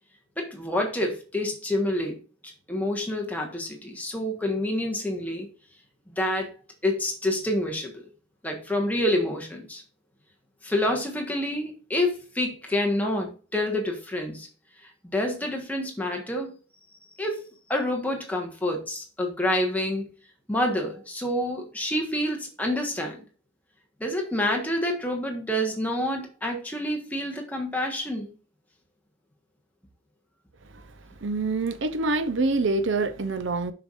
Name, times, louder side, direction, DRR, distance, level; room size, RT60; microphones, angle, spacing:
voice 1, 0.4-2.2 2.7-5.5 6.1-6.5 6.8-8.1 8.4-9.8 10.6-14.5 14.8-16.5 17.2-20.0 20.5-23.2 24.0-28.3, left 1 dB, 10° left, 1.3 m, -28 dB
voice 2, 31.2-33.7, right 3 dB, 65° right, 0.7 m, -26 dB
6.9 x 5.9 x 2.5 m
head